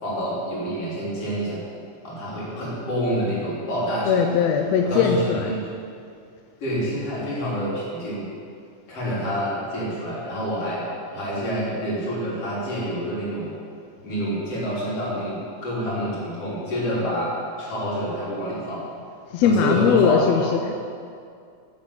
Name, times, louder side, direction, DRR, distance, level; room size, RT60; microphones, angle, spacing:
voice 1, 0.0-1.6 2.0-4.3 4.8-5.6 6.6-8.3 8.9-10.9 11.1-13.5 14.0-18.8 19.4-20.5, equal, 50° left, -7 dB, 4.5 m, -27 dB
voice 2, 4.1-5.6 19.3-20.7, left 6 dB, 75° left, 4 dB, 1.7 m, -20 dB
10.5 x 8.9 x 7.6 m, 2.3 s
omnidirectional pair, 3.5 m